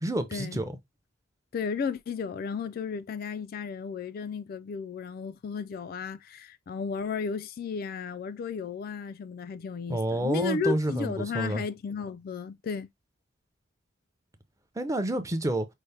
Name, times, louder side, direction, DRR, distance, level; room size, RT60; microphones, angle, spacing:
voice 1, 0.0-0.8 9.9-11.6 14.8-15.7, right 1 dB, 15° right, 0.5 m, -29 dB
voice 2, 1.5-12.9, left 5 dB, 50° left, 0.3 m, -34 dB
5.5 x 2.1 x 3.3 m
head